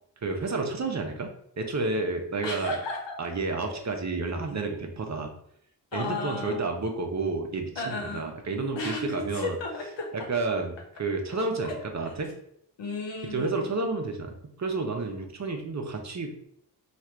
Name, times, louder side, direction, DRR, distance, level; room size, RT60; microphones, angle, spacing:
voice 1, 0.2-1.3 1.6-2.8 3.2-5.3 5.9-9.6 10.1-12.3 13.3-16.4, right 3 dB, 40° right, 4 dB, 0.7 m, -30 dB
voice 2, 2.4-3.0 3.7-3.8 5.9-6.6 7.8-8.3 8.8-10.1 11.6-11.7 12.8-13.7, left 3 dB, 85° left, 0 dB, 1.1 m, -34 dB
3.1 x 2.5 x 4.4 m, 0.70 s
cardioid pair, 75°, 43 cm